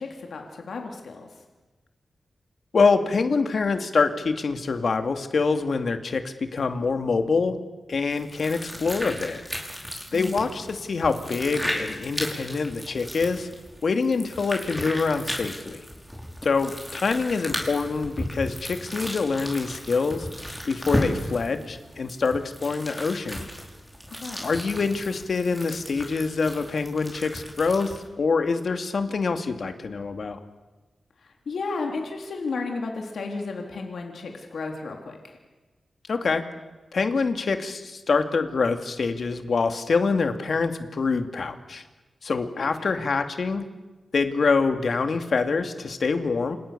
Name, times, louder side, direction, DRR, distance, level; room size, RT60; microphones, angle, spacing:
voice 1, 0.0-1.4 10.1-10.5 24.2-24.6 31.2-35.4 42.6-42.9, left 4 dB, 80° left, 2 dB, 3.5 m, -33 dB
voice 2, 2.7-7.6 7.9-9.4 10.1-13.5 13.8-15.9 16.4-20.3 20.6-23.5 24.4-30.4 36.1-36.4 36.9-41.8 42.2-43.7 44.1-46.6, left 4 dB, 65° left, 7 dB, 2.4 m, -25 dB
sound 1, 8.1-28.1, equal, ahead, 5.8 m, -35 dB
28.5 x 27.5 x 7.0 m, 1.2 s
wide cardioid pair, 90°, 0 cm